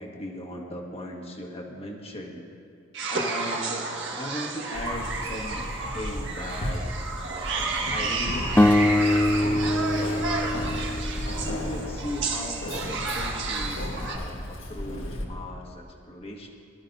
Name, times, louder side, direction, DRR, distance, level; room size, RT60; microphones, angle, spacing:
voice 1, 0.0-2.4 3.1-6.8 7.9-10.3 11.4-16.5, left 1 dB, 30° left, 0 dB, 1.6 m, -38 dB
sound 1, 2.9-14.2, right 3 dB, 65° right, 1.6 m, -32 dB
Keys jangling, 4.7-15.2, left 1 dB, 80° left, 1.6 m, -35 dB
sound 2, 8.6-11.7, left 1 dB, 10° left, 0.4 m, -23 dB
21.5 x 12.5 x 2.7 m, 2.6 s
head